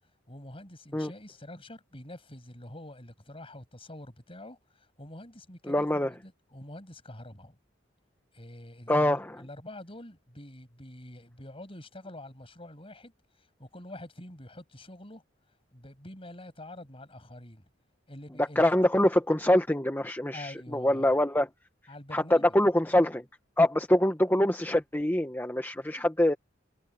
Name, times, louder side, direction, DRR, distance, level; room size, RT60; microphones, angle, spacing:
voice 1, 0.3-7.6 8.3-15.2 15.7-17.6 18.1-18.7 20.3-21.1 21.9-22.5, left 1 dB, 30° left, 7.9 m, -46 dB
voice 2, 5.7-6.1 8.9-9.3 18.6-21.5 22.1-22.2 22.5-23.2 23.6-26.3, left 1 dB, 10° left, 1.4 m, -24 dB
head